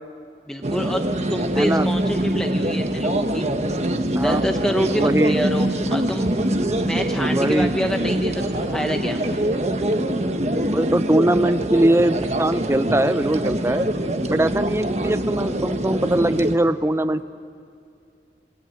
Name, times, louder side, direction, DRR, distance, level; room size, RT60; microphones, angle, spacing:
voice 1, 0.4-1.0 1.3-3.5 4.2-6.3 6.8-9.2, equal, 5° left, 3 dB, 1.0 m, -26 dB
sound 1, 0.6-16.6, right 1 dB, 40° right, 1.3 m, -24 dB
voice 2, 1.5-1.9 4.1-4.4 5.0-5.4 7.2-7.7 10.7-13.9 14.3-17.2, right 1 dB, 15° right, 13 dB, 0.6 m, -21 dB
27.5 x 22.5 x 8.9 m, 2.4 s
head